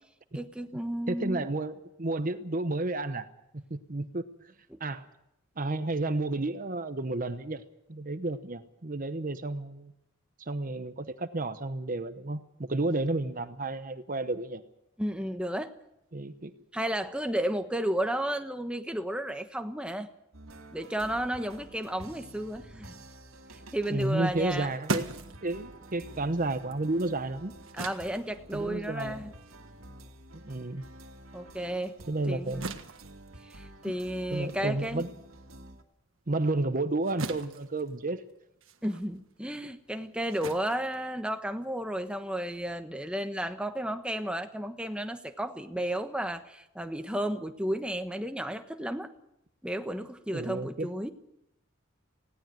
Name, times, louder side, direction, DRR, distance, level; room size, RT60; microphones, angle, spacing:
voice 1, 0.3-1.4 4.7-4.8 15.0-15.7 16.7-20.1 20.7-22.9 23.7-24.7 27.7-29.3 31.3-32.0 32.3-32.6 33.4-35.0 38.8-49.1 49.6-51.1, right 1 dB, 5° right, 7 dB, 1.2 m, -33 dB
voice 2, 1.1-3.3 3.5-4.2 4.8-5.0 5.6-7.6 7.9-9.9 10.4-14.6 16.1-16.5 23.9-25.1 25.4-27.5 28.5-29.3 30.3-30.8 32.1-32.8 33.8-33.9 34.3-35.1 36.3-38.2 50.3-50.9, right 2 dB, 40° right, 10 dB, 0.9 m, -31 dB
sound 1, 20.3-35.8, right 1 dB, 90° right, 2.2 m, -50 dB
sound 2, 24.3-31.1 31.5-41.7, right 3 dB, 70° right, 1.5 m, -42 dB
20.0 x 17.0 x 7.8 m, 0.82 s
head